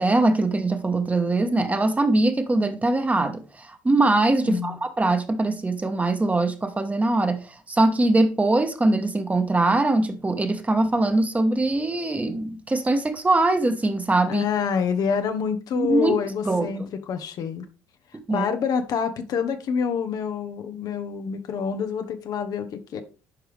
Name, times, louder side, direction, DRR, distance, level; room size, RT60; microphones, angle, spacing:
voice 1, 0.0-14.4 15.8-16.1 16.4-16.7 18.3-18.5, right 2 dB, 20° right, 1.4 m, -22 dB
voice 2, 4.4-4.8 14.3-17.7 18.3-23.0, left 6 dB, 60° left, 1.0 m, -27 dB
11.0 x 4.7 x 3.4 m
hypercardioid pair, 60°, 7 cm